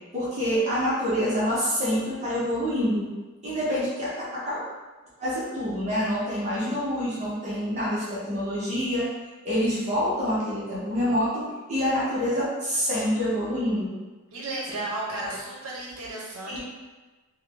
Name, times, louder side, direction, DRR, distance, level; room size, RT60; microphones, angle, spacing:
voice 1, 0.1-3.1 3.4-4.6 5.2-9.1 9.4-13.9 15.2-15.4 16.5-16.6, equal, 35° right, -9 dB, 0.9 m, -26 dB
voice 2, 14.3-16.6, right 2 dB, 75° right, -4 dB, 0.8 m, -33 dB
3.6 x 2.2 x 3.5 m, 1.2 s
head